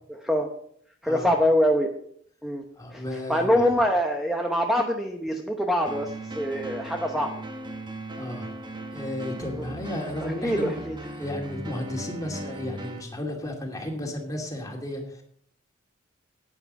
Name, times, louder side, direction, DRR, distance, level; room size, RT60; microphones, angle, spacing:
voice 1, 1.0-1.9 2.4-2.6 2.9-3.0 3.3-7.3 9.6-9.7 10.4-11.0, equal, ahead, 2 dB, 0.9 m, -24 dB
voice 2, 2.8-3.7 8.2-8.5 8.9-10.8 11.2-15.2, left 1 dB, 20° left, 1 dB, 2.5 m, -33 dB
sound 1, 5.9-13.0, right 1 dB, 25° right, 1.3 m, -37 dB
10.5 x 9.5 x 5.5 m, 0.66 s
head